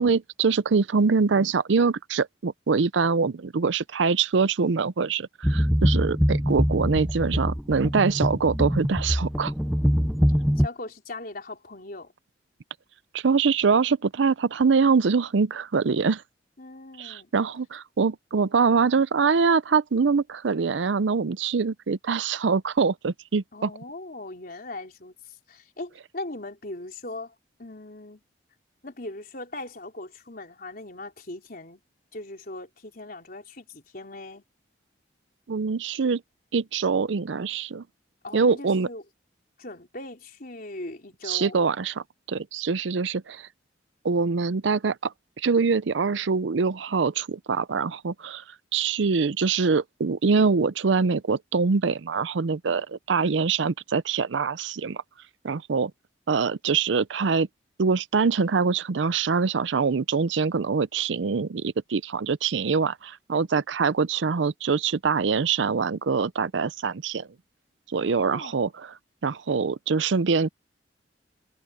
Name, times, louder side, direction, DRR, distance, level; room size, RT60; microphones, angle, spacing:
voice 1, 0.0-9.5 13.1-16.2 17.0-23.7 35.5-36.2 36.5-37.8 38.3-38.9 41.3-43.5 44.0-48.4 48.7-55.0 55.4-55.9 56.3-57.5 57.8-67.3 67.9-68.9 69.2-70.5, right 5 dB, 80° right, 0.6 m, -24 dB
sound 1, 5.4-10.7, equal, ahead, 0.4 m, -23 dB
voice 2, 10.6-12.1 16.6-17.3 23.5-28.2 28.8-31.8 32.1-34.4 38.2-39.0 39.6-41.6 52.7-52.8 68.0-68.6, left 2 dB, 50° left, 4.1 m, -39 dB
head